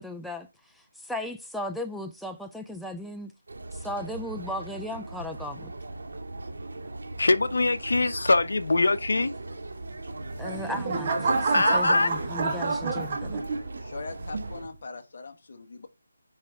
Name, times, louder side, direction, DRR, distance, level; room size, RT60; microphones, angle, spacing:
voice 1, 0.0-3.3 3.7-5.7 10.4-13.5, left 1 dB, ahead, 0.4 m, -36 dB
sound 1, 3.5-14.6, right 2 dB, 75° right, 2.2 m, -39 dB
voice 2, 7.2-9.3 11.5-12.1, left 3 dB, 75° left, 0.8 m, -23 dB
sound 2, 10.2-13.8 14.3-14.7, right 3 dB, 30° right, 1.6 m, -28 dB
voice 3, 13.8-15.9, left 3 dB, 45° left, 1.2 m, -41 dB
9.6 x 3.3 x 3.6 m
figure-of-eight pair, 170°, 0 cm